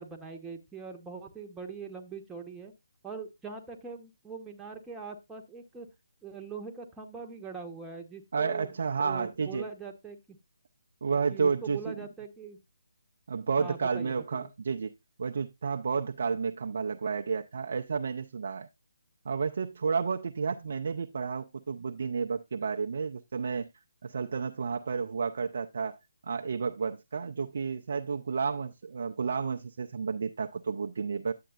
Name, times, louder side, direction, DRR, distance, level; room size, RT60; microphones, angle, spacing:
voice 1, 0.0-2.7 3.0-5.9 6.2-8.7 9.0-10.4 11.1-12.6 13.6-14.5, right 5 dB, 10° right, 1.0 m, -42 dB
voice 2, 8.3-9.6 11.0-12.0 13.3-14.9 15.2-18.7 19.2-23.7 24.0-26.0 26.2-31.3, right 5 dB, 55° right, 0.5 m, -31 dB
10.0 x 7.6 x 2.4 m
figure-of-eight pair, 150°, 0 cm